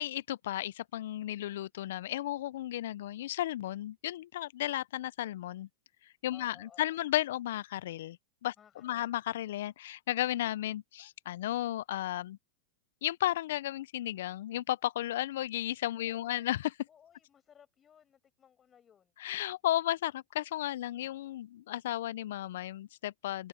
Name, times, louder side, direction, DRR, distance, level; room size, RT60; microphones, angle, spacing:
voice 1, 0.0-5.7 6.2-8.2 8.4-8.5 8.8-12.4 13.0-16.7 19.2-23.5, left 13 dB, 70° left, 0.4 m, -34 dB
voice 2, 6.3-7.0 8.6-9.2 16.0-16.5 16.9-19.1, left 8 dB, 25° left, 7.6 m, -59 dB
hypercardioid pair, 110°, 0 cm